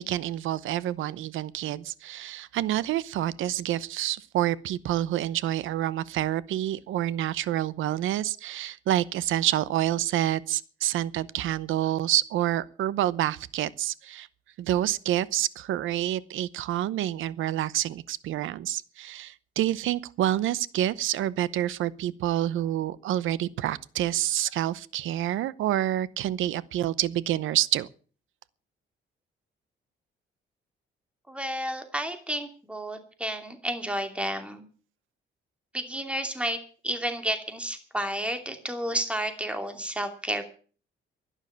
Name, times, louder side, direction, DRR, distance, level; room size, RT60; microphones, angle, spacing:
voice 1, 0.0-14.3 14.6-27.9, right 13 dB, 80° right, 0.8 m, -28 dB
voice 2, 31.3-34.6 35.7-36.6 36.8-40.4, right 1 dB, 5° right, 2.7 m, -31 dB
12.0 x 10.0 x 8.5 m
cardioid pair, 90°, 20 cm